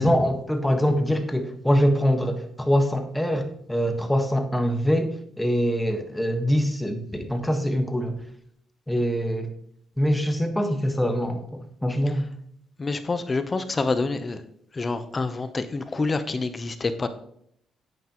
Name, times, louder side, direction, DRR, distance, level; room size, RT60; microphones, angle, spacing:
voice 1, 0.0-8.2 8.9-9.5 10.0-12.3, equal, 5° left, 6 dB, 1.5 m, -24 dB
voice 2, 12.8-14.4 14.7-17.1, left 3 dB, 30° left, 10 dB, 0.9 m, -27 dB
9.8 x 9.2 x 3.1 m, 0.68 s
cardioid pair, 90°, 0 cm